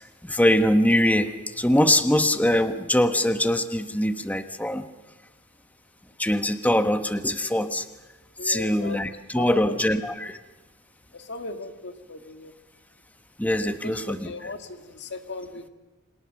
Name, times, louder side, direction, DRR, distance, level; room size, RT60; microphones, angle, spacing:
voice 1, 0.2-4.9 6.2-7.8 8.4-10.4 13.4-14.3, left 1 dB, 5° left, 9 dB, 1.1 m, -23 dB
voice 2, 8.4-9.0 9.4-9.8 11.1-12.5 13.8-15.7, left 3 dB, 50° left, 7 dB, 2.0 m, -37 dB
29.5 x 26.5 x 6.5 m, 1.1 s
head